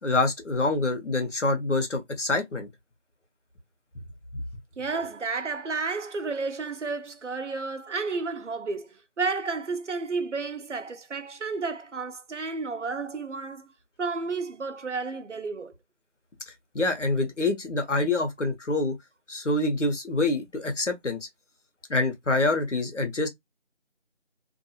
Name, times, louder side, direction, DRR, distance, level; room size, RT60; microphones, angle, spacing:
voice 1, 0.0-2.7 16.7-19.0 19.3-21.3 21.9-23.3, left 2 dB, 85° left, 1.2 m, -26 dB
voice 2, 4.8-13.7 14.0-15.7, right 4 dB, 90° right, 0.7 m, -32 dB
2.6 x 2.6 x 2.8 m
figure-of-eight pair, 175°, 35 cm